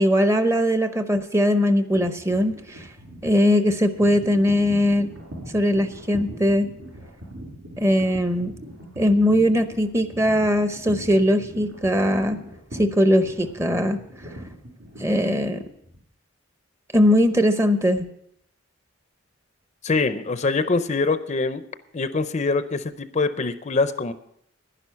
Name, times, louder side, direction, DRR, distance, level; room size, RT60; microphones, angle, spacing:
voice 1, 0.0-2.8 3.2-5.1 5.5-6.7 7.8-8.5 9.0-12.4 12.8-14.0 15.0-15.6 16.9-18.1, equal, 15° right, 9 dB, 0.7 m, -20 dB
sound 1, 1.9-16.0, equal, 90° right, 5.2 m, -40 dB
voice 2, 19.8-21.6 21.9-24.1, left 3 dB, 35° left, 12 dB, 0.5 m, -24 dB
11.0 x 11.0 x 5.6 m, 0.73 s
head